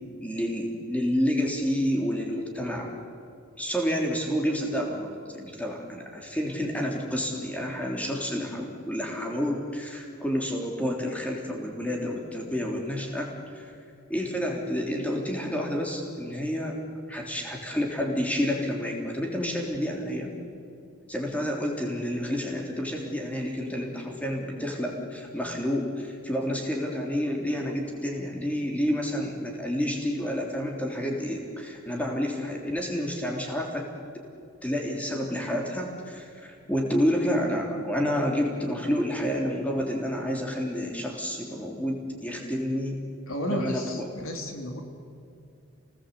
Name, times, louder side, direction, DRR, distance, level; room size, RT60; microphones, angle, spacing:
voice 1, 0.2-2.9 3.6-13.7 14.1-16.8 17.1-20.3 21.1-33.9 34.6-43.0 43.5-44.1, equal, 5° left, 0 dB, 3.3 m, -29 dB
voice 2, 43.3-44.8, equal, 70° left, 3 dB, 3.2 m, -32 dB
29.5 x 19.5 x 8.4 m, 2.5 s
head